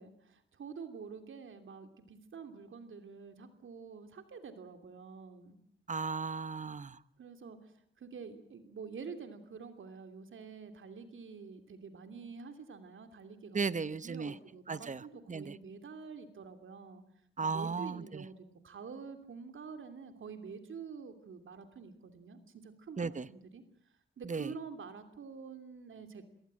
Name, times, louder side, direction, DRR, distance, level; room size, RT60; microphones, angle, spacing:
voice 1, 0.0-5.6 7.2-7.6 8.0-17.0 17.4-23.6 24.2-26.2, right 5 dB, 75° right, 8 dB, 2.9 m, -47 dB
voice 2, 5.9-7.0 13.5-14.3 14.7-15.0 15.3-15.5 17.4-18.2 23.0-23.3 24.2-24.5, right 5 dB, 40° right, 17 dB, 0.9 m, -35 dB
26.5 x 18.5 x 7.6 m, 0.66 s
cardioid pair, 75°, 20 cm